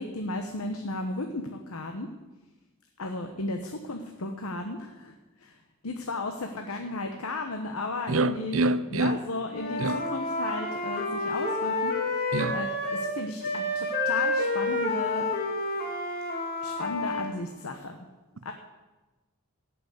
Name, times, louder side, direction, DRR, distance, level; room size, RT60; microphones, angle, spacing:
voice 1, 0.0-2.1 3.0-5.1 5.4-5.6 5.8-8.6 8.9-15.3 16.6-18.0 18.4-18.5, left 2 dB, 85° left, 1.1 m, -34 dB
voice 2, 8.1-9.2 9.8-10.0 12.3-12.6, right 2 dB, 70° right, 0.7 m, -26 dB
Wind instrument woodwind instrument, 9.5-13.1 13.4-17.3, left 2 dB, 45° left, 2.3 m, -29 dB
18.0 x 6.1 x 8.2 m
head